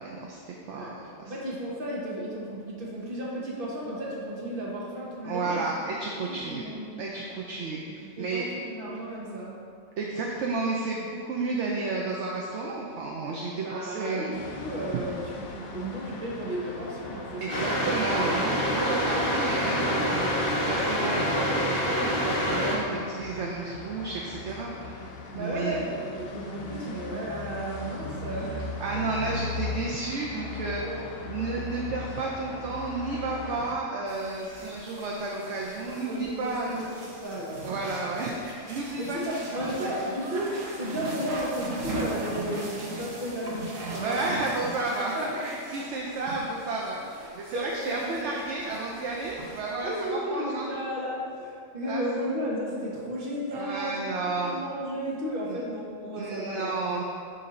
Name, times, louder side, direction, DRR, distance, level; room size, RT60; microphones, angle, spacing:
voice 1, 0.0-1.3 5.2-6.6 7.0-8.5 10.0-14.3 17.4-25.1 25.3-25.8 28.8-30.8 31.3-36.8 37.6-39.2 39.6-39.9 44.0-50.7 51.8-52.0 53.5-54.6 55.5-55.6 56.2-57.0, right 3 dB, 70° right, -2 dB, 0.9 m, -32 dB
voice 2, 1.3-5.7 6.2-7.0 8.0-9.6 13.5-17.9 25.3-28.6 28.9-29.0 30.8-31.1 34.4-34.7 36.1-37.7 39.0-44.5 45.1-45.5 47.5-48.3 49.8-54.0 54.4-56.8, equal, 45° right, -4 dB, 1.2 m, -34 dB
sound 1, 14.3-33.8, left 3 dB, 60° left, 0.7 m, -39 dB
sound 2, 17.5-22.8, equal, 45° left, 1.4 m, -26 dB
sound 3, 34.1-50.1, right 2 dB, 85° right, 1.4 m, -40 dB
6.8 x 2.7 x 5.2 m, 2.3 s
omnidirectional pair, 1.3 m